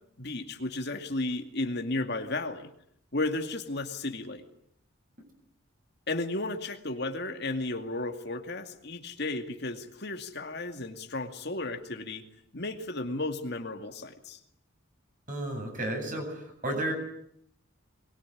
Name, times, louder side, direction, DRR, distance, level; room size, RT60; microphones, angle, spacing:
voice 1, 0.2-2.7 3.1-4.4 6.1-12.2 12.5-14.4, left 2 dB, 55° left, 6 dB, 2.3 m, -34 dB
voice 2, 15.3-16.9, right 1 dB, 40° right, 4 dB, 8.0 m, -32 dB
22.5 x 22.0 x 10.0 m, 0.71 s
head